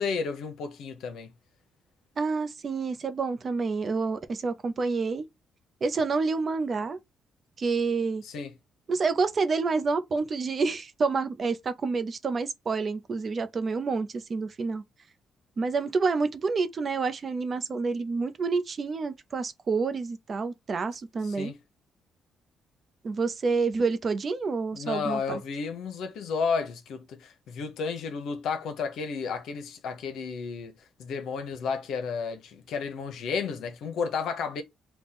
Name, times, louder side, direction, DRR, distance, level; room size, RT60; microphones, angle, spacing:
voice 1, 0.0-1.3 8.2-8.5 21.2-21.6 24.7-30.7 31.0-34.6, left 5 dB, 75° left, 0.8 m, -32 dB
voice 2, 2.2-5.3 5.8-7.0 7.6-8.2 8.9-14.8 15.6-21.5 23.0-25.4, right 4 dB, 40° right, 0.6 m, -28 dB
3.5 x 2.3 x 4.0 m
cardioid pair, 90°, 0 cm